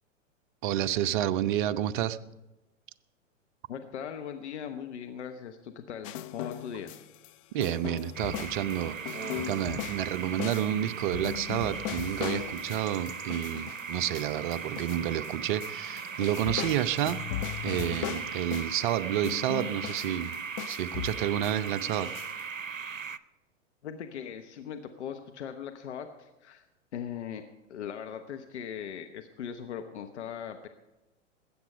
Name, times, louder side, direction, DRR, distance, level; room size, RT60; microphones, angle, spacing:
voice 1, 0.6-2.2 7.5-17.2 17.6-20.4 20.7-22.1, right 11 dB, 40° right, 11 dB, 0.7 m, -30 dB
voice 2, 3.7-6.9 23.8-26.7 26.9-30.7, left 8 dB, 60° left, 7 dB, 1.1 m, -39 dB
sound 1, 6.0-7.3 7.6-15.3 15.6-18.9 19.2-22.4, left 12 dB, 30° left, 0.4 m, -38 dB
sound 2, 8.1-23.2, right 6 dB, 90° right, 0.6 m, -38 dB
19.5 x 8.8 x 5.5 m, 1.0 s
figure-of-eight pair, 100°, 38 cm